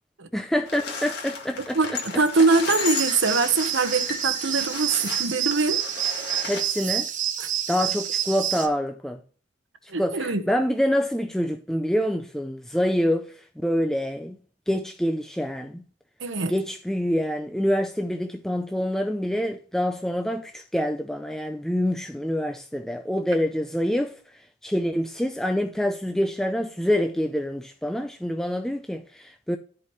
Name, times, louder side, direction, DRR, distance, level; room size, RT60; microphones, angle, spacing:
voice 1, 0.3-2.0 6.5-7.1 7.7-9.2 9.8-14.4 14.7-15.8 16.5-24.2 24.6-29.6, equal, ahead, 0.5 m, -26 dB
sound 1, 0.7-6.6, left 4 dB, 55° left, 1.9 m, -34 dB
voice 2, 2.2-5.8 7.4-7.5 9.9-10.4 16.2-16.5, right 4 dB, 65° right, 1.2 m, -23 dB
sound 2, 2.8-8.7, right 9 dB, 40° right, 1.2 m, -28 dB
14.0 x 4.7 x 3.1 m
head